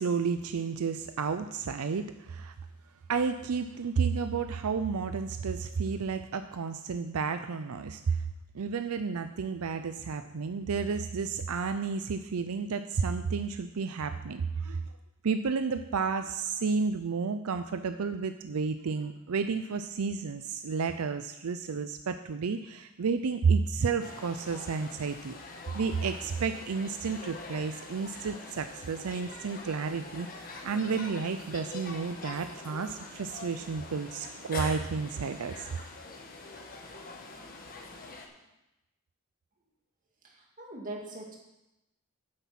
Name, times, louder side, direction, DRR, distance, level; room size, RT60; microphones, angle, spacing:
voice 1, 0.0-2.5 3.1-8.3 8.5-14.8 15.2-25.4 25.7-35.7, right 5 dB, 85° right, 9 dB, 0.5 m, -31 dB
sound 1, 24.0-38.3, left 3 dB, 40° left, 1.4 m, -44 dB
voice 2, 40.2-41.4, right 2 dB, 40° right, -1 dB, 2.3 m, -41 dB
9.7 x 8.3 x 5.9 m, 0.95 s
head